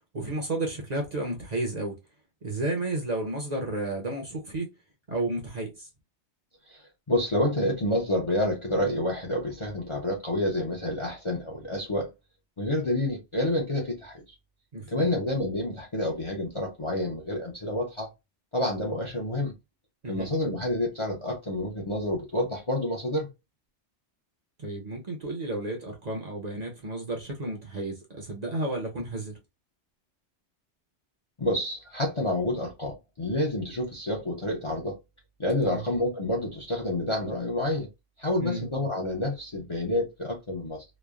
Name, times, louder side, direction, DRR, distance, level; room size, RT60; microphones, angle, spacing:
voice 1, 0.1-2.0 2.4-4.7 5.1-5.9 14.7-15.1 20.0-20.3 24.6-29.4 35.6-35.8 38.4-38.7, right 2 dB, 45° right, 0.7 m, -32 dB
voice 2, 7.1-12.1 12.6-14.2 14.9-18.1 18.5-19.5 20.1-23.3 31.4-35.0 35.4-37.9 38.2-40.8, left 1 dB, 35° left, 0.5 m, -28 dB
3.0 x 2.0 x 2.3 m
omnidirectional pair, 1.2 m